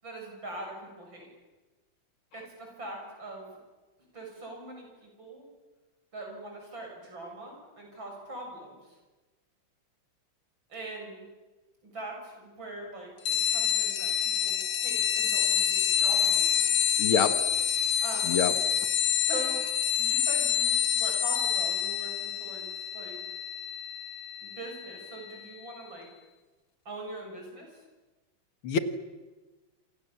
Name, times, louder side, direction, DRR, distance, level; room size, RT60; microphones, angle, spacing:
voice 1, 0.0-1.3 2.3-3.5 4.0-5.4 6.1-9.0 10.7-11.3 11.8-13.1 13.5-16.7 18.0-18.5 19.2-19.6 20.0-23.2 24.4-26.1 26.8-27.8, right 2 dB, 60° right, 1 dB, 8.3 m, -42 dB
sound 1, 13.3-25.4, left 8 dB, 70° left, 2.5 m, -27 dB
voice 2, 17.0-17.3 18.3-18.5 28.6-28.8, left 7 dB, 85° left, 9 dB, 2.5 m, -25 dB
28.0 x 26.5 x 7.3 m, 1.2 s
omnidirectional pair, 2.3 m